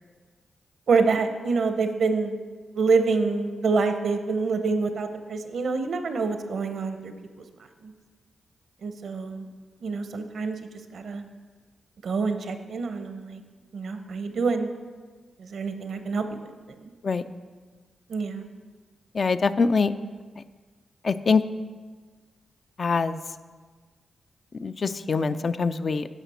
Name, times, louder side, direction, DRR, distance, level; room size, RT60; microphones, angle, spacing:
voice 1, 0.9-2.4 2.7-7.1 7.8-7.9 8.8-9.5 9.8-10.6 10.9-11.2 12.0-13.4 13.7-14.7 15.4-16.4 16.8-16.9 18.1-18.4, right 4 dB, 75° right, 8 dB, 0.7 m, -26 dB
voice 2, 19.1-19.9 20.4-20.5 21.0-21.4 22.8-23.2 24.6-26.1, left 4 dB, 55° left, 12 dB, 0.4 m, -24 dB
11.5 x 5.1 x 4.1 m, 1.4 s
cardioid pair, 60°, 0 cm